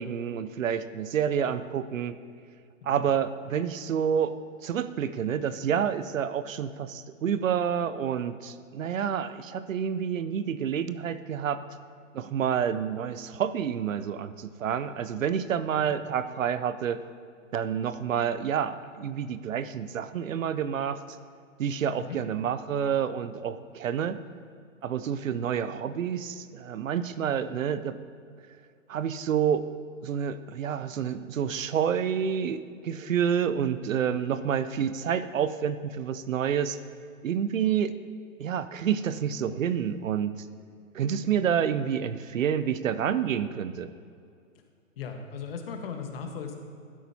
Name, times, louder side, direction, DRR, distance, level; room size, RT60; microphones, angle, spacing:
voice 1, 0.0-2.2 2.8-4.3 4.6-11.6 12.1-17.0 17.5-21.0 21.6-24.2 24.8-28.0 28.9-29.6 30.0-36.8 37.2-37.9 38.4-40.4 40.9-43.9, right 8 dB, 70° right, 13 dB, 0.7 m, -28 dB
voice 2, 45.0-46.5, left 6 dB, 45° left, 4 dB, 1.4 m, -38 dB
12.0 x 10.0 x 2.8 m, 2.3 s
hypercardioid pair, 140°, 40 cm